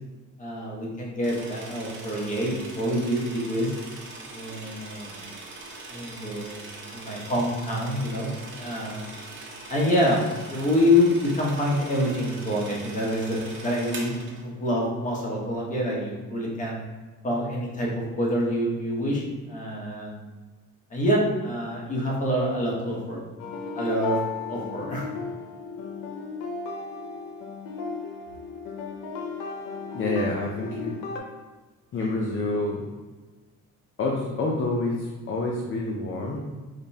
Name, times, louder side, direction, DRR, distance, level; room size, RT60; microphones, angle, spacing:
voice 1, 0.4-3.7 4.3-5.3 5.9-6.6 6.9-9.1 9.7-16.8 17.2-20.2 20.9-23.2 23.7-24.2 24.5-25.0, left 1 dB, 25° left, -4 dB, 1.0 m, -26 dB
sound 1, 1.2-14.4, right 3 dB, 35° right, 0.8 m, -41 dB
sound 2, 23.4-31.2, left 5 dB, 85° left, 0.6 m, -35 dB
voice 2, 29.9-31.0 31.9-32.9 34.0-36.4, left 2 dB, 40° left, -1 dB, 0.5 m, -28 dB
5.0 x 2.2 x 2.7 m, 1.3 s
cardioid pair, 125°, 33 cm